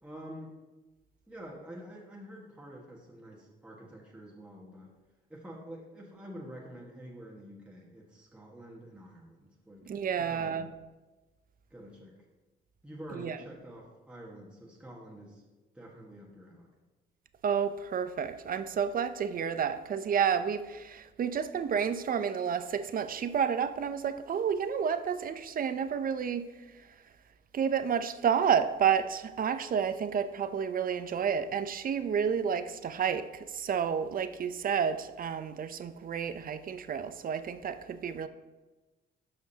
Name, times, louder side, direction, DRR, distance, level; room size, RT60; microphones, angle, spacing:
voice 1, 0.0-0.6 1.3-4.9 5.3-9.9 10.2-10.7 11.7-12.1 12.8-15.4 15.7-16.7, equal, 5° right, -4 dB, 1.5 m, -47 dB
voice 2, 9.9-10.7 13.1-13.4 17.4-26.5 27.5-33.3 33.5-38.3, right 7 dB, 45° right, 12 dB, 0.6 m, -30 dB
12.5 x 5.1 x 2.8 m, 1.2 s
cardioid pair, 90°, 20 cm